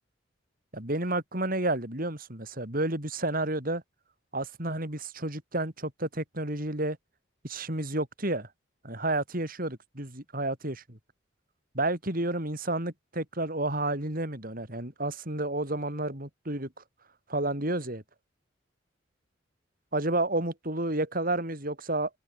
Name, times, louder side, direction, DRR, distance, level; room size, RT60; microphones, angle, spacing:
voice 1, 0.7-3.8 4.3-7.0 7.4-8.5 8.8-11.0 11.7-16.8 17.3-18.0 19.9-22.1, right 2 dB, 45° right, 5.1 m, -31 dB
open air
head